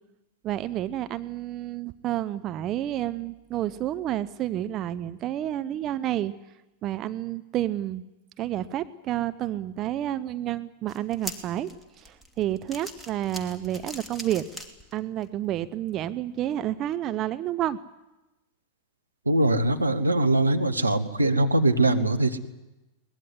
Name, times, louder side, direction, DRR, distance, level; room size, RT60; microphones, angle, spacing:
voice 1, 0.4-6.3 6.8-8.0 8.4-11.7 12.0-14.4 14.9-17.8, right 12 dB, 35° right, 12 dB, 0.8 m, -30 dB
sound 1, 10.9-15.3 15.7-15.8 16.8-16.9, equal, ahead, 2.8 m, -41 dB
voice 2, 19.3-22.4, right 2 dB, 85° right, 6 dB, 1.6 m, -22 dB
22.5 x 19.5 x 9.6 m, 1.0 s
figure-of-eight pair, 90°, 0 cm